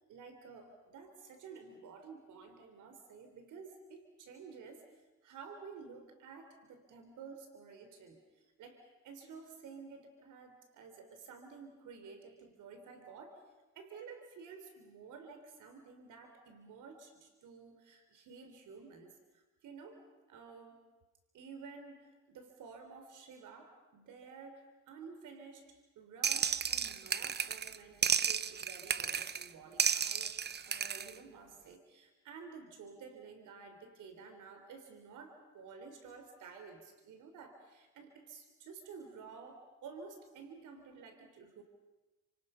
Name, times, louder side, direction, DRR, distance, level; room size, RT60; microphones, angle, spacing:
voice 1, 0.1-4.9 5.2-8.2 8.6-13.4 13.8-20.0 20.3-20.8 21.3-41.6, right 5 dB, 80° right, 6 dB, 3.6 m, -52 dB
sound 1, 26.2-27.8 28.0-29.5 29.8-31.1, right 7 dB, 35° right, 0.8 m, -33 dB
29.5 x 27.0 x 5.7 m, 1.1 s
cardioid pair, 90°, 30 cm